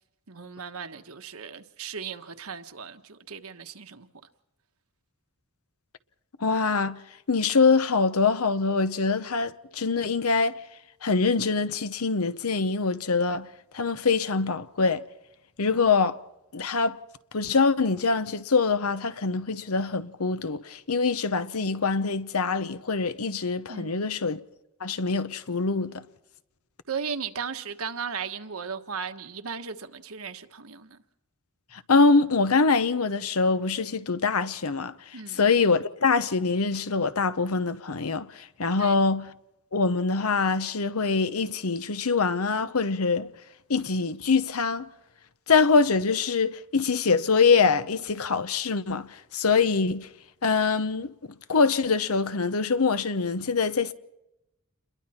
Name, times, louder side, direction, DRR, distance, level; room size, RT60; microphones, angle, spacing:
voice 1, 0.3-4.1 23.7-24.2 26.9-31.0 35.1-35.4 38.7-39.0, right 6 dB, 80° right, 1.4 m, -36 dB
voice 2, 6.4-7.0 7.3-10.5 11.0-13.5 13.7-15.0 15.6-16.2 16.5-17.0 17.3-24.4 24.8-26.0 31.7-39.3 39.7-43.3 43.7-44.9 45.5-50.1 50.4-51.1 51.5-53.9, left 4 dB, 90° left, 0.9 m, -24 dB
28.5 x 22.0 x 4.4 m
head